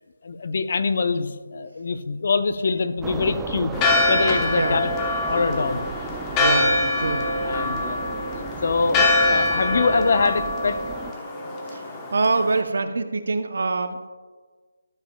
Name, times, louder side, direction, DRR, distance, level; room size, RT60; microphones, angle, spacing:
voice 1, 0.2-3.7 4.1-4.9 5.2-5.9 6.4-6.8 7.4-8.2 8.6-10.8, left 4 dB, 50° left, 11 dB, 0.5 m, -24 dB
sound 1, 3.0-11.1, right 5 dB, 10° right, 0.3 m, -35 dB
Church bell, 3.7-12.6, left 2 dB, 15° left, 0.8 m, -24 dB
voice 2, 6.3-7.3 11.7-14.1, right 3 dB, 60° right, 9 dB, 0.6 m, -25 dB
13.0 x 7.1 x 2.2 m, 1.4 s
figure-of-eight pair, 165°, 0 cm